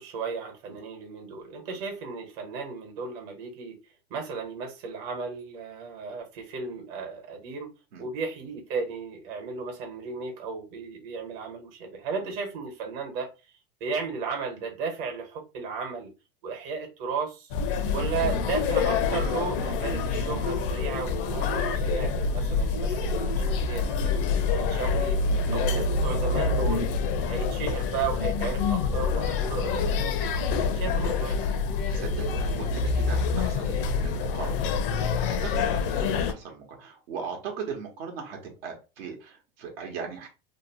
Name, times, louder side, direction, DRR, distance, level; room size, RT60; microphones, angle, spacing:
voice 1, 0.0-3.8 4.1-7.7 8.0-13.3 13.8-16.1 16.4-17.5 17.9-25.2 25.5-26.9 27.3-31.6, right 5 dB, 55° right, 1.1 m, -35 dB
sound 1, 17.5-36.3, left 4 dB, 65° left, 0.5 m, -26 dB
voice 2, 31.9-34.7 35.2-40.3, right 6 dB, 80° right, 1.0 m, -39 dB
2.8 x 2.0 x 2.8 m
supercardioid pair, 125°, 29 cm